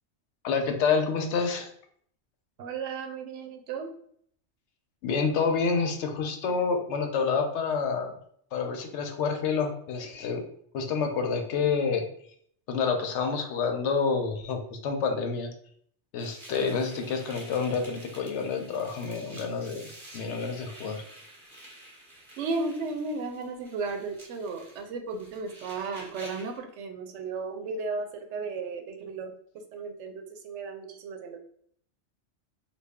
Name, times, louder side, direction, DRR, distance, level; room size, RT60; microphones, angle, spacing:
voice 1, 0.4-1.7 5.0-8.1 8.5-10.4 10.7-12.0 12.7-15.5 16.1-21.0, left 5 dB, 80° left, 4 dB, 0.9 m, -28 dB
voice 2, 2.6-3.9 22.4-29.3 29.7-31.4, right 4 dB, 85° right, 5 dB, 0.9 m, -34 dB
sound 1, 16.2-26.6, right 1 dB, 25° right, 0.9 m, -49 dB
3.3 x 2.3 x 3.4 m, 0.63 s
omnidirectional pair, 1.2 m